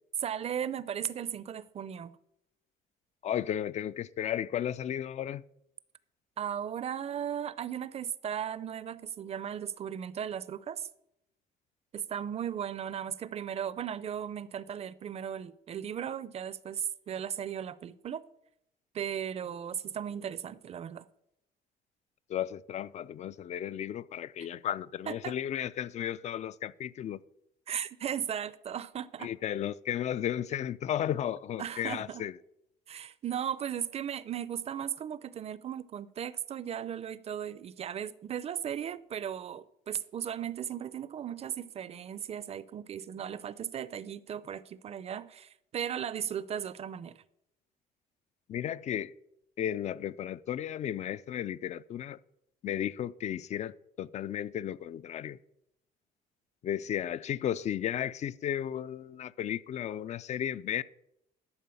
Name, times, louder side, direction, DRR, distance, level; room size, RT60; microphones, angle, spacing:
voice 1, 0.2-2.1 6.4-10.9 11.9-18.2 18.9-21.0 25.1-25.3 27.7-29.3 31.6-32.3 32.9-47.2, right 9 dB, 40° right, 0.5 m, -36 dB
voice 2, 3.2-5.4 22.3-27.2 29.2-32.3 48.5-49.1 49.6-52.2 52.6-53.7 54.0-55.4 56.6-60.8, left 10 dB, 45° left, 0.4 m, -34 dB
11.5 x 4.6 x 7.0 m
cardioid pair, 110°, 17 cm